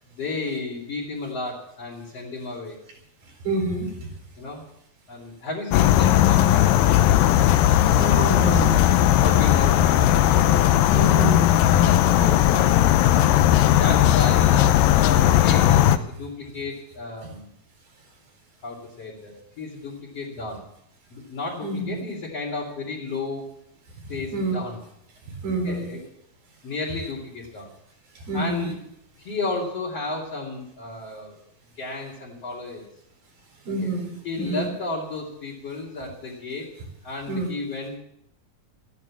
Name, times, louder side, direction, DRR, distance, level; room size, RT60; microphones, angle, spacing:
voice 1, 0.1-2.8 4.4-4.6 5.1-6.9 9.2-10.8 11.6-12.9 13.3-17.5 18.6-20.6 21.1-23.5 24.1-24.8 25.6-26.1 26.6-27.7 28.3-28.8 29.2-31.4 31.8-32.9 33.8-33.9 34.2-36.7 37.0-38.0, left 3 dB, 45° left, -4 dB, 3.8 m, -33 dB
voice 2, 3.4-3.9 8.0-9.0 10.9-11.5 21.6-22.0 24.3-24.5 25.4-25.8 28.3-28.7 33.7-34.1 34.4-34.7 37.3-37.5, right 2 dB, 75° right, 1 dB, 6.3 m, -27 dB
sound 1, 5.7-16.0, left 12 dB, 80° left, 2.4 m, -17 dB
14.0 x 11.0 x 7.4 m, 0.76 s
omnidirectional pair, 4.2 m